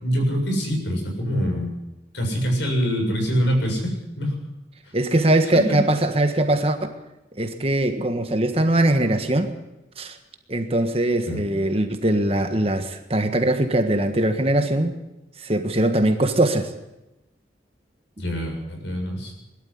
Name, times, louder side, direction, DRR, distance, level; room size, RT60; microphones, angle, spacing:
voice 1, 0.0-1.7 2.1-4.4 5.5-5.8 11.3-11.4 18.2-19.3, equal, 65° left, 2 dB, 7.1 m, -24 dB
voice 2, 4.9-6.8 7.4-9.5 10.0-10.2 10.5-14.9 15.4-16.7, right 1 dB, 30° right, 7 dB, 1.6 m, -21 dB
21.5 x 12.5 x 9.7 m, 0.96 s
head